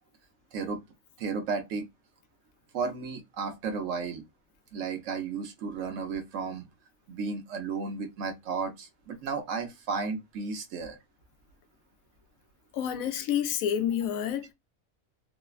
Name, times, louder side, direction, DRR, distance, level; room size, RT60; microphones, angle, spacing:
voice 1, 0.5-0.8 1.2-1.8 2.7-4.2 4.7-6.7 7.1-11.0, right 5 dB, 70° right, 1.0 m, -33 dB
voice 2, 12.7-14.5, left 9 dB, 85° left, 1.0 m, -29 dB
3.2 x 2.1 x 2.3 m
omnidirectional pair, 1.4 m